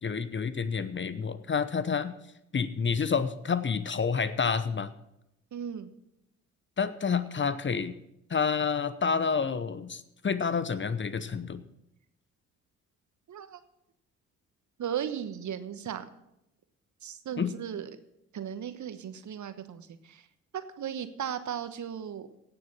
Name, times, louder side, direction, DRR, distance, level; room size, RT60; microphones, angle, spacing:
voice 1, 0.0-2.1 2.5-4.9 6.8-7.9 8.3-11.6 17.4-17.5, left 6 dB, 30° left, 14 dB, 0.9 m, -29 dB
voice 2, 5.5-5.9 13.3-13.6 14.8-16.1 17.0-17.9 18.3-20.3 20.5-22.3, right 9 dB, 50° right, 11 dB, 1.2 m, -36 dB
17.0 x 6.9 x 6.3 m, 0.84 s
hypercardioid pair, 45°, 37 cm